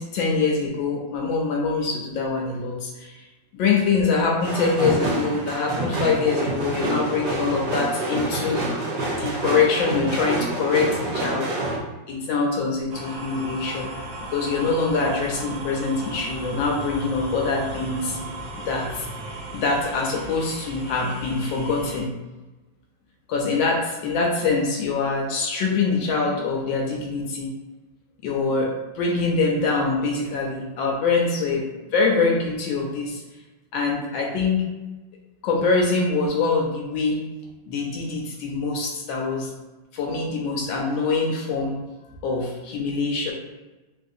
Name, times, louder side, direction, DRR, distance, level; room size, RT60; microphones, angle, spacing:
voice 1, 0.0-3.2 3.5-8.6 9.1-11.8 12.1-13.9 14.3-18.2 18.6-19.1 19.5-22.1 23.3-27.5 28.2-28.7 28.9-33.2 33.7-34.6 35.4-37.3 37.7-39.5 39.9-41.8 42.2-43.3, left 4 dB, 80° left, -1 dB, 1.3 m, -24 dB
sound 1, 4.4-11.8, right 2 dB, 85° right, 0.6 m, -27 dB
sound 2, 12.9-22.0, right 1 dB, 70° right, 1.4 m, -36 dB
3.6 x 2.5 x 2.6 m, 1.1 s
omnidirectional pair, 2.1 m